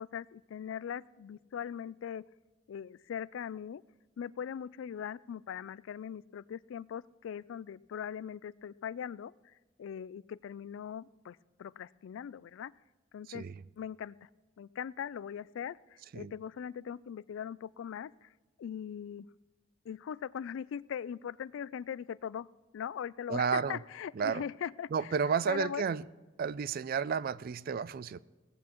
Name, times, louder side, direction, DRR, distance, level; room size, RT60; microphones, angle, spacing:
voice 1, 0.0-2.3 2.7-3.8 4.2-9.3 9.8-12.7 13.1-13.4 13.8-14.3 14.6-18.3 18.6-19.3 19.9-22.5 22.7-25.1 25.5-25.8, left 8 dB, 75° left, 20 dB, 0.3 m, -40 dB
voice 2, 13.3-13.6 16.1-16.3 23.3-23.8 24.2-24.4 24.9-26.0 26.4-28.2, right 6 dB, 45° right, 19 dB, 0.3 m, -32 dB
18.0 x 14.5 x 3.0 m, 1.2 s
head